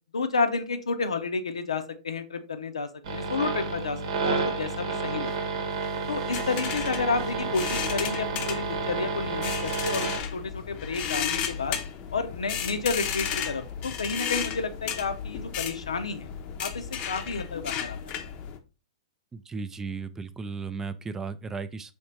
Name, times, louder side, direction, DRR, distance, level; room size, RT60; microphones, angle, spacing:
voice 1, 0.1-5.3 6.1-11.8 12.1-16.3 16.6-18.2, left 4 dB, 85° left, 9 dB, 0.6 m, -31 dB
sound 1, 3.0-10.2, right 4 dB, 60° right, 1.0 m, -30 dB
sound 2, 6.3-18.6, left 8 dB, 35° left, 0.6 m, -34 dB
voice 2, 19.3-21.9, right 4 dB, 15° right, 12 dB, 0.3 m, -35 dB
4.3 x 3.2 x 3.1 m, 0.31 s
hypercardioid pair, 115°, 3 cm